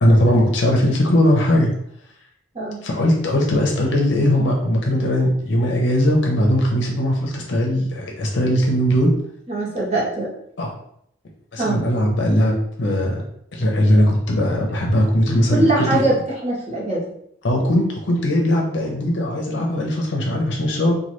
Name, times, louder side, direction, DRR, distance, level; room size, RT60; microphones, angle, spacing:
voice 1, 0.0-1.7 2.8-9.1 10.6-10.7 11.5-13.2 13.5-16.0 17.4-20.9, equal, 65° left, -1 dB, 0.6 m, -19 dB
voice 2, 9.5-10.3 11.6-11.8 15.5-16.1 16.4-17.0, right 2 dB, 35° right, -6 dB, 1.0 m, -21 dB
3.1 x 2.2 x 3.0 m, 0.70 s
head